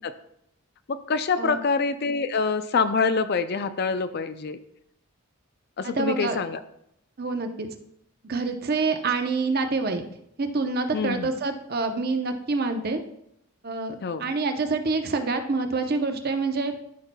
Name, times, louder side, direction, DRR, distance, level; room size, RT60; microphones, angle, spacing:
voice 1, 0.9-4.6 5.8-6.6 10.9-11.3 14.0-14.3, left 4 dB, 45° left, 11 dB, 0.4 m, -26 dB
voice 2, 5.8-6.4 7.2-7.7 8.2-10.0 10.4-13.0 13.6-16.7, right 3 dB, 45° right, 6 dB, 0.7 m, -27 dB
13.5 x 5.5 x 2.3 m, 0.75 s
head